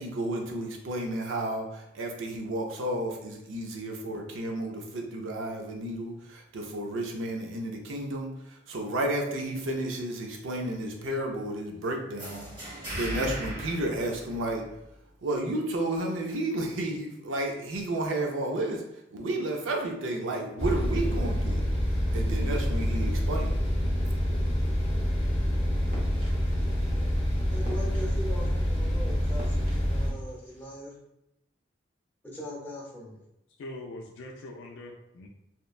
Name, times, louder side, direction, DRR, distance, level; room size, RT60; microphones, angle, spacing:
voice 1, 0.0-12.5 12.9-14.6 15.2-18.8 19.1-21.6 22.1-23.6, right 1 dB, 85° right, 1 dB, 0.5 m, -32 dB
sound 1, 12.2-14.9, equal, 25° right, 1.1 m, -37 dB
sound 2, 20.6-30.1, equal, 70° right, 1.0 m, -27 dB
sound 3, 25.9-30.9, equal, 50° right, 0.8 m, -49 dB
voice 2, 27.5-30.9 32.2-33.2, equal, 10° left, -4 dB, 0.7 m, -40 dB
voice 3, 33.6-35.3, left 1 dB, 70° left, 0 dB, 0.3 m, -42 dB
2.8 x 2.1 x 2.3 m, 0.83 s
head